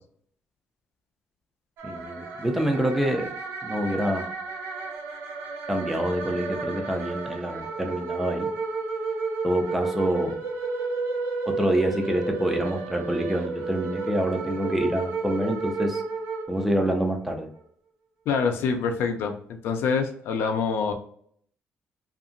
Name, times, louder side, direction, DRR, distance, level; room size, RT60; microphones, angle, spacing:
voice 1, 1.8-3.3 3.6-4.3 5.7-8.5 9.4-10.4 11.5-16.0 16.5-17.5, right 1 dB, 5° right, 4 dB, 0.3 m, -26 dB
sound 1, 1.8-17.1, right 4 dB, 70° right, 0.5 m, -32 dB
voice 2, 18.3-19.3 19.6-20.9, left 5 dB, 70° left, 6 dB, 0.4 m, -25 dB
2.8 x 2.4 x 2.5 m, 0.62 s
cardioid pair, 180°, 4 cm